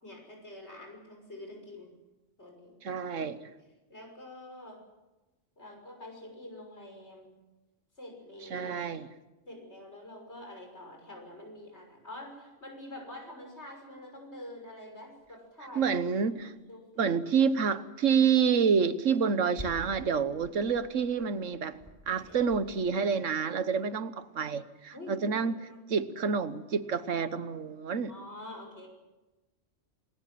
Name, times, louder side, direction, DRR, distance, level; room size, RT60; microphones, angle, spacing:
voice 1, 0.0-2.0 2.4-3.0 3.9-4.8 5.6-7.3 8.0-8.7 9.5-16.0 16.3-16.4 16.7-17.2 24.9-25.9 28.1-28.9, left 1 dB, 60° left, 6.4 m, -46 dB
voice 2, 2.8-3.4 8.5-9.1 15.7-16.5 17.0-21.8 22.1-25.5 25.9-28.1, right 6 dB, 80° right, 1.5 m, -28 dB
sound 1, 15.2-15.3 15.8-15.9 16.3-16.8 17.6-17.7 18.1-18.3 18.9-22.7, equal, 15° right, 7.0 m, -48 dB
27.5 x 20.5 x 7.7 m
omnidirectional pair, 1.3 m